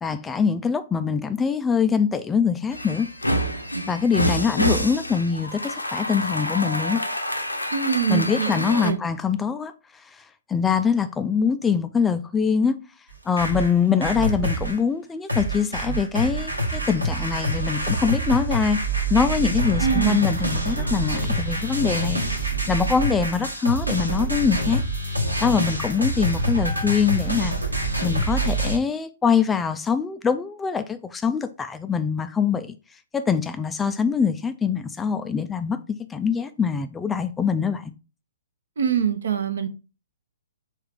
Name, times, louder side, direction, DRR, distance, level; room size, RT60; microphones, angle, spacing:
voice 1, 0.0-3.1 3.9-7.0 8.1-9.7 10.1-10.2 10.5-12.8 13.3-18.8 19.1-22.2 22.7-24.8 25.4-27.5 28.0-32.8 33.1-35.8 36.1-37.9, left 6 dB, 10° left, 0.3 m, -23 dB
sound 1, 2.7-8.9, equal, 85° left, 0.7 m, -27 dB
voice 2, 7.7-9.0 19.8-20.2 38.8-39.7, right 7 dB, 60° right, 0.7 m, -24 dB
sound 2, 13.1-14.8 15.3-28.8, right 1 dB, 85° right, 1.2 m, -26 dB
4.6 x 3.2 x 3.5 m
figure-of-eight pair, 120°, 0 cm